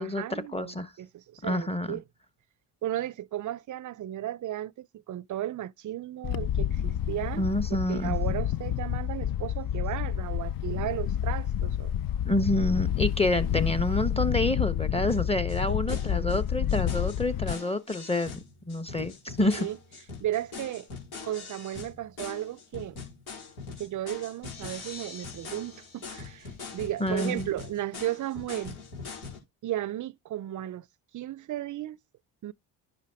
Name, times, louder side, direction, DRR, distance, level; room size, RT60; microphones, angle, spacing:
voice 1, 0.0-2.0 2.8-7.5 7.9-11.9 15.7-16.7 19.6-19.8 20.2-20.9 21.2-23.0 23.8-28.8 29.6-30.9 31.1-32.0 32.4-32.5, right 13 dB, 40° right, 0.5 m, -35 dB
voice 2, 0.5-0.9 1.4-2.0 7.4-8.1 12.2-18.3 18.7-19.7 27.0-27.5, left 1 dB, 15° left, 1.0 m, -28 dB
Wind, 6.2-17.5, left 10 dB, 45° left, 0.5 m, -29 dB
sound 1, 15.1-15.2 15.5-15.6 15.9-16.4 16.7-29.4, left 5 dB, 85° left, 4.8 m, -43 dB
10.5 x 5.6 x 3.5 m
supercardioid pair, 60°, 46 cm